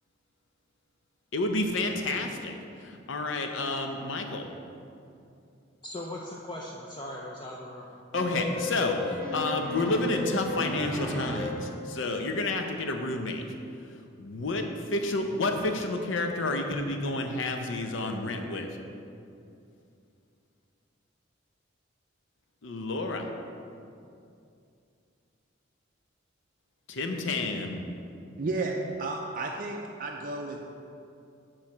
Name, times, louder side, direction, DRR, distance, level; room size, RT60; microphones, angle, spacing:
voice 1, 1.3-4.5 8.1-13.4 14.2-18.7 22.6-23.3 26.9-27.8, left 2 dB, 75° left, 4 dB, 0.6 m, -30 dB
voice 2, 5.8-7.9, left 1 dB, 25° left, -2 dB, 0.4 m, -39 dB
sound 1, 8.1-11.8, left 2 dB, 5° left, 0.8 m, -35 dB
voice 3, 28.4-30.6, right 3 dB, 45° right, 1 dB, 0.4 m, -32 dB
8.6 x 3.2 x 5.9 m, 2.6 s
head